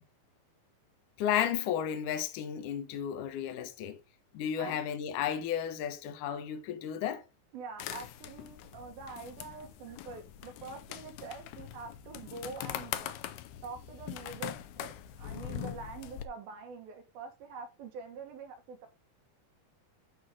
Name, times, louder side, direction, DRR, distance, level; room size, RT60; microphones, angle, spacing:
voice 1, 1.2-4.0 4.3-7.2, left 9 dB, 70° left, 2.3 m, -33 dB
voice 2, 7.5-13.1 13.6-18.9, right 4 dB, 75° right, 3.3 m, -45 dB
sound 1, 7.8-16.3, left 12 dB, 85° left, 2.8 m, -42 dB
12.0 x 4.6 x 3.6 m
omnidirectional pair, 4.4 m